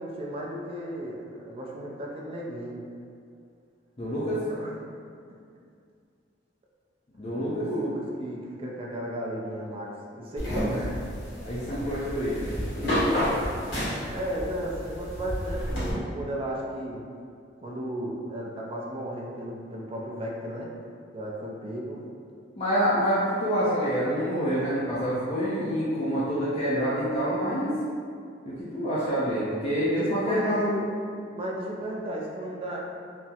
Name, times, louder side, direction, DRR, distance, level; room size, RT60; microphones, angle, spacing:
voice 1, 0.0-2.8 4.5-4.7 7.6-10.9 14.1-17.1 17.6-20.8 21.1-22.0 29.9-30.9 31.2-32.8, equal, 30° right, -2 dB, 0.4 m, -34 dB
voice 2, 4.0-4.4 7.2-7.7 10.7-10.8 11.4-12.5 22.6-27.7 28.5-30.8, equal, 30° left, -10 dB, 0.5 m, -27 dB
sound 1, 10.4-15.9, equal, 60° left, 1.2 m, -30 dB
3.5 x 2.0 x 2.8 m, 2.3 s
head